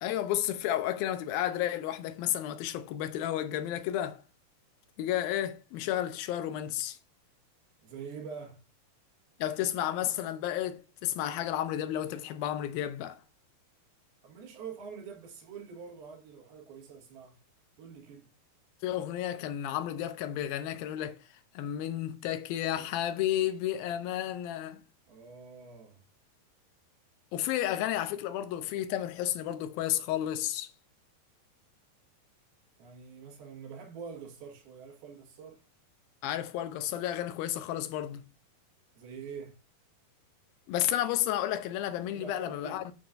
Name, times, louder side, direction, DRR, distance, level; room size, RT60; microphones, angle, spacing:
voice 1, 0.0-4.2 5.0-7.0 9.4-13.2 18.8-21.2 21.6-24.8 27.3-30.7 36.2-38.3 40.7-42.9, left 12 dB, 85° left, 2.5 m, -32 dB
voice 2, 7.8-8.6 14.2-17.4 17.8-18.3 25.1-26.0 32.8-35.6 39.0-39.5 42.1-42.8, right 6 dB, 85° right, 3.7 m, -45 dB
9.1 x 8.7 x 2.6 m
omnidirectional pair, 4.2 m